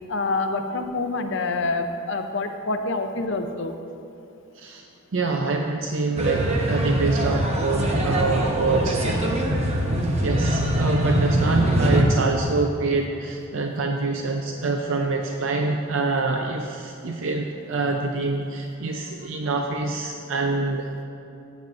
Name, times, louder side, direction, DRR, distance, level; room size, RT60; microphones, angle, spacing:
voice 1, 0.1-3.7, left 3 dB, 60° left, 6 dB, 0.6 m, -26 dB
voice 2, 4.6-4.9 5.1-9.3 10.2-21.0, right 3 dB, 65° right, 3 dB, 0.5 m, -26 dB
sound 1, 6.2-12.0, right 1 dB, 30° right, 1.0 m, -23 dB
15.0 x 8.9 x 2.6 m, 2.8 s
head